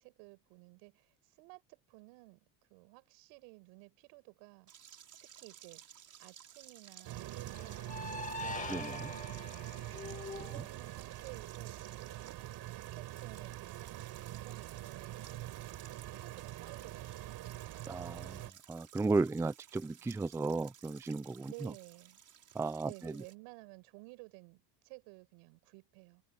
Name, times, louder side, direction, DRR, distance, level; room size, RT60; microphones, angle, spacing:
voice 1, 0.0-4.7 5.2-5.8 6.2-9.8 10.4-12.2 12.6-15.2 16.1-17.3 21.5-22.2 22.8-26.2, right 31 dB, 80° right, 6.6 m, -54 dB
sound 1, 4.7-23.3, right 9 dB, 40° right, 5.7 m, -57 dB
sound 2, 7.1-18.5, right 15 dB, 55° right, 4.1 m, -44 dB
sound 3, 7.5-10.7, left 3 dB, 15° left, 2.2 m, -43 dB
voice 2, 8.7-9.1 17.9-18.4 18.7-21.7 22.5-23.1, right 3 dB, 5° right, 0.4 m, -34 dB
supercardioid pair, 115°, 46 cm